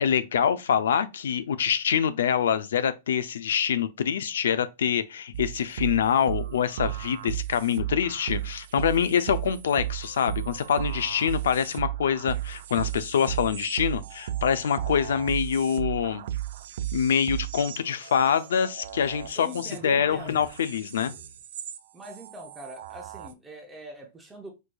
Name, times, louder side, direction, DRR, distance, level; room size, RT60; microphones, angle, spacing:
voice 1, 0.0-16.2 16.9-21.1, left 8 dB, 90° left, 0.4 m, -25 dB
sound 1, 5.3-21.8 22.0-23.3, right 12 dB, 60° right, 0.4 m, -35 dB
Human voice, 17.8-18.5 19.4-21.4, left 6 dB, 60° left, 0.7 m, -48 dB
voice 2, 19.3-20.5 21.9-24.5, equal, 5° right, 0.6 m, -42 dB
4.5 x 2.6 x 2.2 m
supercardioid pair, 170°, 0 cm